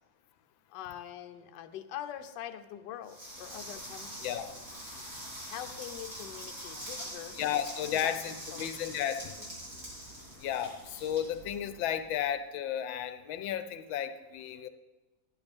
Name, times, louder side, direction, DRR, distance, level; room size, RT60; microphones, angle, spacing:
voice 1, 0.7-4.3 5.4-7.4 7.9-8.2 8.5-8.8, left 11 dB, 70° left, 7 dB, 1.2 m, -43 dB
sound 1, 3.1-12.0, equal, 45° right, 4.0 m, -44 dB
voice 2, 7.4-9.5 10.4-14.7, left 10 dB, 85° left, 10 dB, 1.4 m, -33 dB
12.5 x 10.5 x 3.5 m, 1.2 s
omnidirectional pair, 2.1 m